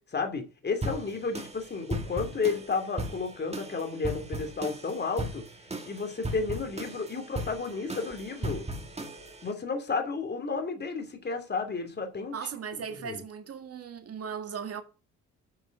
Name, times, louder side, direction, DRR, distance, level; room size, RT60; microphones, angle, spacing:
voice 1, 0.1-5.4 5.9-8.6 9.4-12.4 13.0-13.2, left 4 dB, 35° left, 2.8 m, -32 dB
sound 1, 0.8-9.5, right 1 dB, 20° right, 2.4 m, -37 dB
voice 2, 12.3-14.8, right 7 dB, 50° right, 2.0 m, -37 dB
9.0 x 5.5 x 6.5 m
cardioid pair, 90°, 30 cm